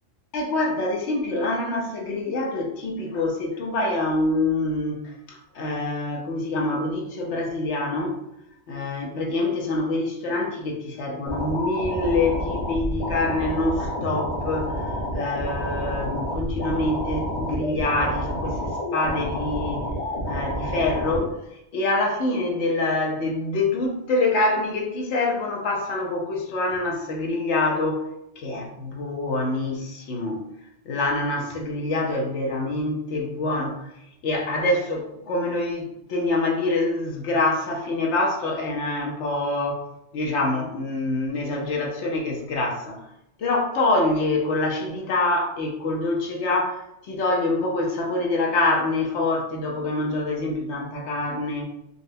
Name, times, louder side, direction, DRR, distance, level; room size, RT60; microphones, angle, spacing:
voice 1, 0.3-8.2 8.7-19.9 20.2-21.3 21.7-28.1 28.4-30.5 30.8-33.9 34.2-39.8 40.1-43.1 43.4-51.6, left 2 dB, 65° left, 0 dB, 1.0 m, -25 dB
sound 1, 11.3-21.3, equal, 35° left, 1.0 m, -29 dB
4.0 x 2.1 x 2.7 m, 0.82 s
omnidirectional pair, 1.3 m